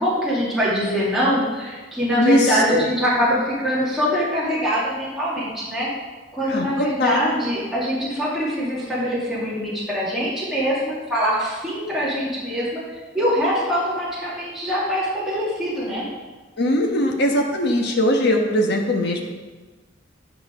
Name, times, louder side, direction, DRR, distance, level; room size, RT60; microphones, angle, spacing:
voice 1, 0.0-5.9 6.3-12.8 13.1-16.0, equal, ahead, -9 dB, 2.3 m, -23 dB
voice 2, 2.2-2.8 6.4-7.2 16.6-19.3, left 1 dB, 60° left, 1 dB, 1.2 m, -20 dB
10.0 x 5.5 x 5.0 m, 1.3 s
head